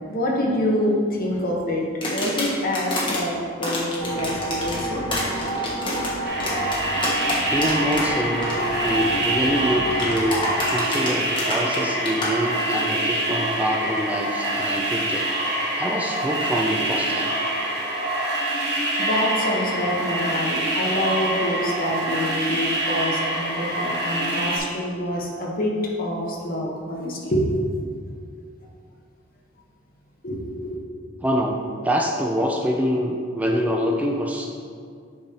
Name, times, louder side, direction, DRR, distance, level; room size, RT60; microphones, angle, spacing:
voice 1, 0.1-5.0 10.9-11.1 19.0-27.7 30.2-30.4, equal, 45° left, -2 dB, 1.1 m, -26 dB
sound 1, 2.0-3.2 3.6-8.0 8.3-8.5 9.9-12.3, left 1 dB, 25° left, 1.4 m, -28 dB
sound 2, 4.0-10.2, right 1 dB, 75° left, 1.3 m, -30 dB
sound 3, 6.2-24.6, right 1 dB, 60° right, 1.4 m, -26 dB
voice 2, 7.5-15.3 15.8-17.3 31.2-34.5, equal, 10° right, 0 dB, 0.4 m, -25 dB
8.2 x 5.2 x 2.9 m, 2.2 s
head